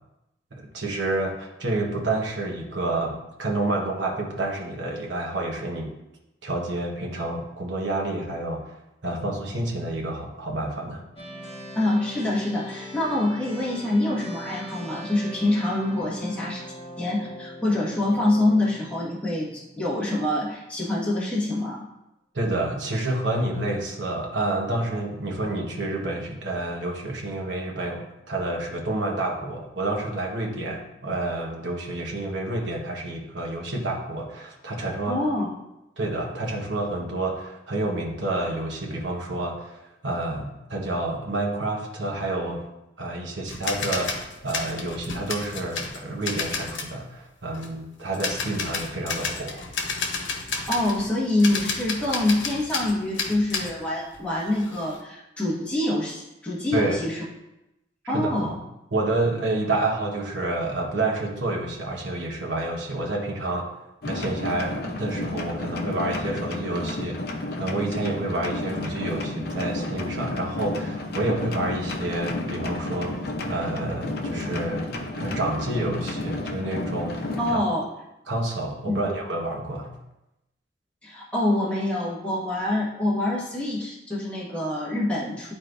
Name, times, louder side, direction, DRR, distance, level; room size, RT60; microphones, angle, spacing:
voice 1, 0.5-5.9 6.4-8.7 9.0-11.0 22.3-35.2 36.0-42.6 43.0-44.1 44.4-49.6 56.7-57.0 58.0-58.5 58.9-63.7 64.0-77.4 78.3-79.9, right 2 dB, 75° right, 0 dB, 1.3 m, -29 dB
sound 1, 11.2-20.5, equal, 30° left, 1.7 m, -41 dB
voice 2, 11.8-16.7 17.0-21.9 35.1-35.5 50.7-57.3 58.1-58.6 77.4-77.9 78.9-79.0 81.0-85.5, left 1 dB, 5° left, -7 dB, 1.6 m, -25 dB
sound 2, 43.5-46.9 47.5-47.7 48.1-51.1 51.4-53.8 54.1-55.0, left 4 dB, 85° left, 1.0 m, -31 dB
sound 3, 64.0-77.5, left 2 dB, 55° left, 0.8 m, -32 dB
11.5 x 4.2 x 2.6 m, 0.91 s
head